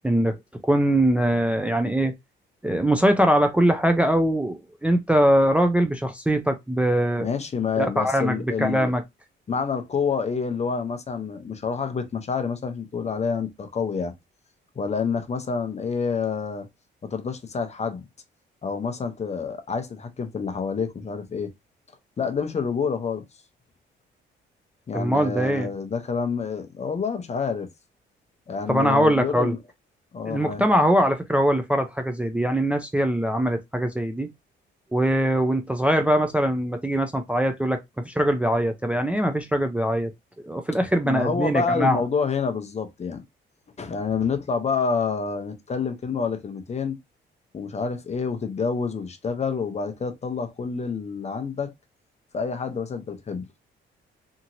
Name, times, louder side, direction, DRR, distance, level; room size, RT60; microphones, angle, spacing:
voice 1, 0.0-0.4 0.6-2.1 2.6-7.3 7.8-9.0 24.9-25.7 28.7-29.5 30.3-34.3 34.9-40.1 40.4-42.0, right 1 dB, 5° right, 0.4 m, -22 dB
voice 2, 7.2-8.9 9.5-14.1 14.8-16.7 17.0-18.1 18.6-21.5 22.2-23.2 24.9-27.7 28.5-29.6 30.1-30.6 41.0-43.2 43.8-47.0 47.5-51.7 52.3-53.5, left 5 dB, 35° left, 0.7 m, -28 dB
2.8 x 2.8 x 2.6 m
cardioid pair, 90°, 20 cm